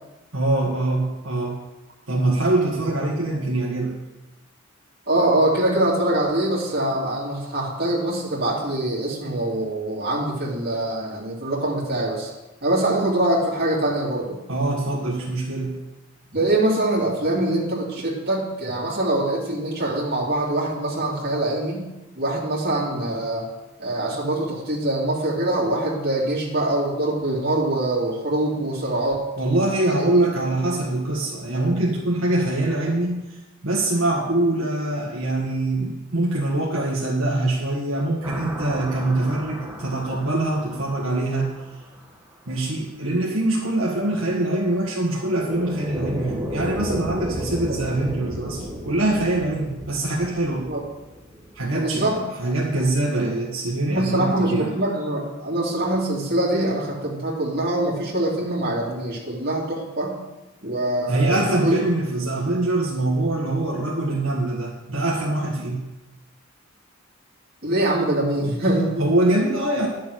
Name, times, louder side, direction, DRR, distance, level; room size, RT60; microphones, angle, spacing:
voice 1, 0.3-1.6 2.1-4.0 14.5-15.8 29.4-33.2 33.6-41.5 42.5-50.7 51.6-54.8 61.1-65.8 69.0-69.9, right 2 dB, 75° right, -4 dB, 1.7 m, -23 dB
voice 2, 5.1-12.3 12.6-14.4 16.3-21.9 22.2-23.5 23.8-29.2 29.9-30.2 47.7-47.8 50.7-50.8 51.7-52.2 53.9-60.2 60.6-61.7 67.6-69.1, right 1 dB, 50° right, -6 dB, 2.8 m, -24 dB
sound 1, 38.2-42.1 45.2-52.3, equal, 10° right, 1.2 m, -34 dB
10.5 x 6.8 x 6.4 m, 1.0 s
head